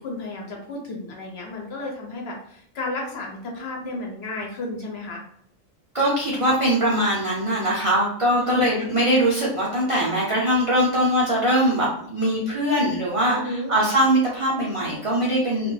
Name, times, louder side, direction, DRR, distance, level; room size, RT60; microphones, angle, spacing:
voice 1, 0.0-5.2 8.4-8.6 13.3-13.7, left 2 dB, 65° left, 0 dB, 0.7 m, -32 dB
voice 2, 5.9-15.7, equal, 50° right, -5 dB, 0.4 m, -21 dB
2.3 x 2.1 x 3.1 m, 0.65 s
omnidirectional pair, 1.4 m